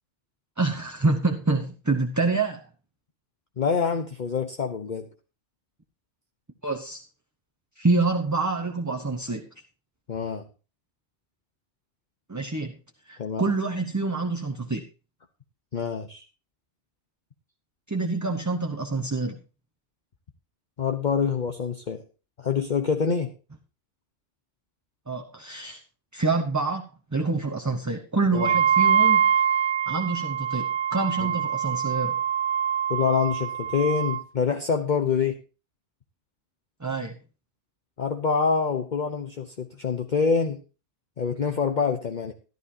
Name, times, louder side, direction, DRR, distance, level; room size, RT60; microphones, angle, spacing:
voice 1, 0.6-2.6 6.6-7.0 7.8-9.4 12.3-12.8 13.1-14.8 17.9-19.4 25.1-25.8 26.1-26.8 27.1-29.2 29.9-32.2 36.8-37.2, right 3 dB, 15° right, 3 dB, 0.8 m, -26 dB
voice 2, 3.6-5.1 10.1-10.4 13.2-13.4 15.7-16.2 20.8-22.0 22.4-23.3 28.3-28.6 31.2-31.4 32.9-35.3 38.0-40.6 41.2-42.3, left 6 dB, 45° left, 6 dB, 1.0 m, -26 dB
Wind instrument woodwind instrument, 28.4-34.2, right 8 dB, 45° right, 0.9 m, -24 dB
14.0 x 12.0 x 2.8 m, 0.33 s
omnidirectional pair, 1.2 m